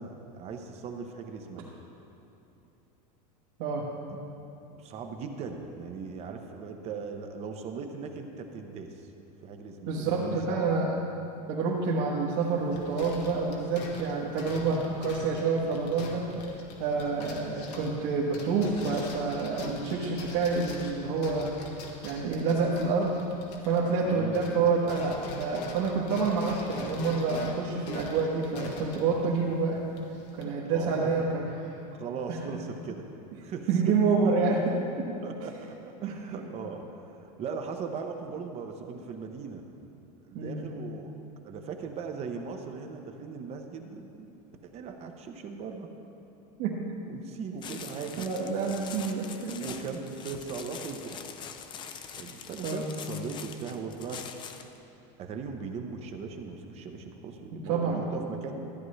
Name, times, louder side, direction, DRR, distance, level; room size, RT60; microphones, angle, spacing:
voice 1, 0.0-1.7 4.7-9.1 9.4-10.6 17.0-17.1 24.0-24.4 29.1-29.5 30.7-31.3 31.9-33.0 33.4-33.9 34.2-34.3 35.2-39.6 40.2-41.1 41.4-44.3 44.6-45.9 47.0-48.3 49.6-51.4 52.1-54.2 55.2-58.7, right 5 dB, 30° right, 5 dB, 0.7 m, -39 dB
voice 2, 3.6-3.9 9.9-11.0 11.5-16.3 16.8-21.5 22.0-23.2 23.6-29.8 30.4-31.5 32.3-32.4 33.7-35.2 36.0-36.1 40.3-40.7 46.6-46.8 48.2-49.7 52.6-52.9 57.5-58.1, right 4 dB, 60° right, -5 dB, 1.3 m, -28 dB
sound 1, 12.4-24.1 24.3-30.4, left 2 dB, 85° left, 1.5 m, -43 dB
sound 2, 47.6-54.8, left 7 dB, 25° left, 0.4 m, -43 dB
13.5 x 8.9 x 3.2 m, 2.9 s
supercardioid pair, 145°, 21 cm